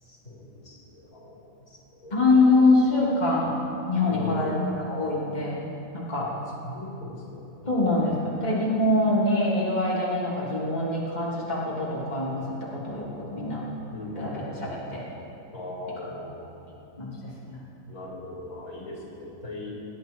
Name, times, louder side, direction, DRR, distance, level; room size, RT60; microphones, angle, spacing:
voice 1, 0.0-2.6 4.1-4.6 6.2-6.3 6.6-8.0 13.9-14.8 15.5-16.3 17.9-19.7, left 2 dB, 90° left, -6 dB, 4.7 m, -39 dB
voice 2, 2.1-4.6 4.8-5.7 5.9-6.2 7.7-13.6 14.2-15.0 16.0-16.1 17.0-17.1 17.5-17.6, left 2 dB, 30° left, -7 dB, 3.2 m, -24 dB
26.5 x 10.5 x 4.7 m, 2.8 s
omnidirectional pair, 1.4 m